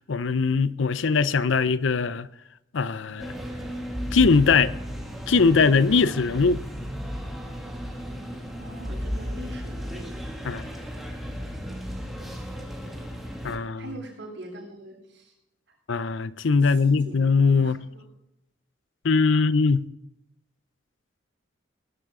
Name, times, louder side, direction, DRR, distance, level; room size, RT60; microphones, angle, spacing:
voice 1, 0.1-2.3 2.7-3.3 4.1-4.7 5.3-6.6 10.5-10.6 13.4-13.9 15.9-17.8 19.0-19.9, left 4 dB, 75° left, 0.6 m, -21 dB
sound 1, 3.2-13.6, equal, ahead, 2.1 m, -34 dB
voice 2, 8.6-10.1 13.8-15.3 16.6-18.0, right 1 dB, 65° right, 6.7 m, -42 dB
20.5 x 12.0 x 3.7 m
head